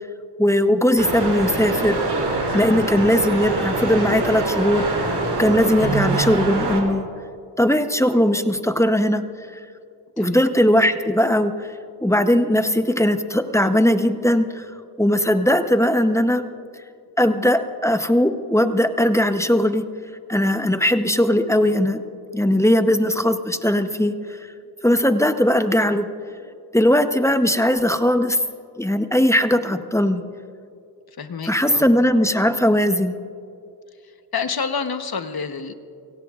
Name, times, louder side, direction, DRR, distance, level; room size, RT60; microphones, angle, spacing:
voice 1, 0.4-2.0 2.5-4.8 5.4-7.1 7.6-9.2 10.2-11.7 12.0-14.7 15.0-16.4 17.2-19.8 20.3-22.0 22.3-24.4 24.8-26.1 26.7-28.4 28.8-30.2 31.5-33.2, left 1 dB, 5° left, 8 dB, 0.8 m, -19 dB
sound 1, 1.0-6.8, right 3 dB, 75° right, 3.0 m, -24 dB
voice 2, 31.2-31.8 34.0-35.7, left 5 dB, 65° left, 8 dB, 1.0 m, -29 dB
30.0 x 17.5 x 2.4 m, 2.5 s
wide cardioid pair, 85°, 40 cm